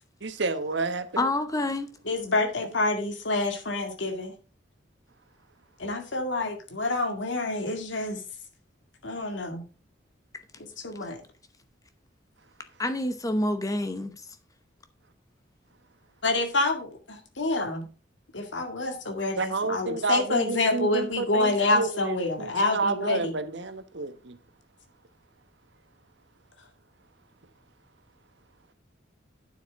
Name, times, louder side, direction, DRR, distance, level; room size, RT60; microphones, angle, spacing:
voice 1, 0.2-1.3 19.4-24.4, right 3 dB, 70° right, 1.1 m, -30 dB
voice 2, 1.2-1.9 12.8-14.1, left 1 dB, 20° left, 0.8 m, -27 dB
voice 3, 2.1-4.3 5.8-8.2 9.0-9.6 10.8-11.2 16.2-17.9 18.3-23.3, left 2 dB, 80° left, 2.2 m, -27 dB
9.4 x 7.6 x 3.6 m
head